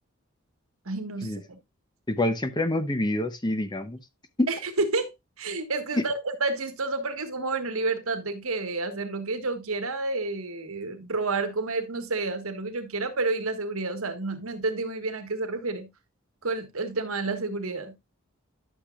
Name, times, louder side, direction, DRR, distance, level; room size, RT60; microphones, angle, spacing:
voice 1, 0.8-1.6 4.5-5.1 5.4-15.9 16.4-17.9, right 3 dB, 80° right, 1.6 m, -30 dB
voice 2, 2.1-4.0 4.4-4.5 5.9-6.0, left 1 dB, 20° left, 0.8 m, -26 dB
11.5 x 6.7 x 2.4 m
head